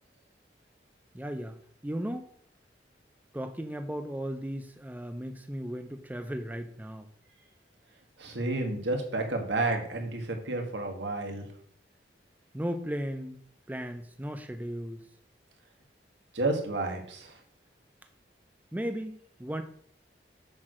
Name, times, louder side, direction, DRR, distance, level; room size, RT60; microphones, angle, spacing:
voice 1, 1.1-1.6 1.8-2.3 3.3-7.1 12.5-13.4 13.7-15.0 18.7-19.6, equal, 10° right, 7 dB, 0.5 m, -36 dB
voice 2, 8.2-11.5 16.3-17.4, right 2 dB, 85° right, 3 dB, 1.8 m, -31 dB
7.5 x 4.7 x 6.2 m, 0.63 s
head